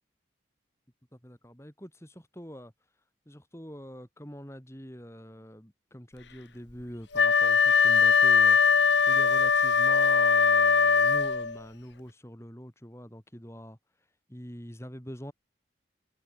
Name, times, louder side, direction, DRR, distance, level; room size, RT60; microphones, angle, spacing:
voice 1, 1.1-2.7 3.3-13.8 14.3-15.3, equal, 15° left, 6.0 m, -44 dB
Wind instrument woodwind instrument, 7.1-11.6, left 5 dB, 75° left, 1.7 m, -21 dB
head